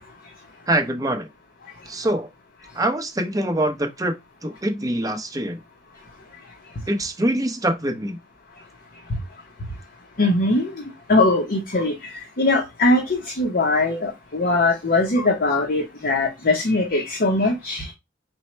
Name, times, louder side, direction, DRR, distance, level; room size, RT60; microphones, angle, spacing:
voice 1, 0.7-1.3 1.9-2.3 2.7-4.1 4.4-5.6 6.9-8.2, right 1 dB, 20° right, 0.7 m, -24 dB
voice 2, 10.2-10.8 11.1-11.9 12.4-17.8, left 2 dB, 50° left, 0.8 m, -21 dB
4.3 x 2.1 x 4.3 m
head